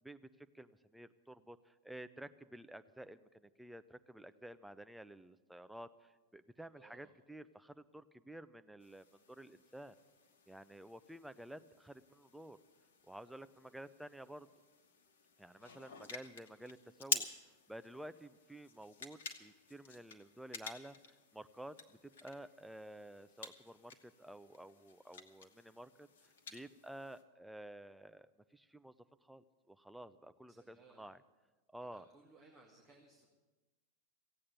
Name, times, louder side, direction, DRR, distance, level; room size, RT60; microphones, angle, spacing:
voice 1, 0.0-9.9 10.5-12.6 13.0-14.5 15.4-17.3 17.7-28.9 29.2-31.2 31.7-32.0, right 1 dB, 5° right, 11 dB, 0.6 m, -52 dB
voice 2, 6.7-7.1 30.5-31.0 31.8-33.3, right 4 dB, 25° right, 0 dB, 2.1 m, -63 dB
sound 1, 8.8-27.2, left 5 dB, 60° left, 1.3 m, -49 dB
16.0 x 8.6 x 9.2 m, 1.2 s
figure-of-eight pair, 90°, 0 cm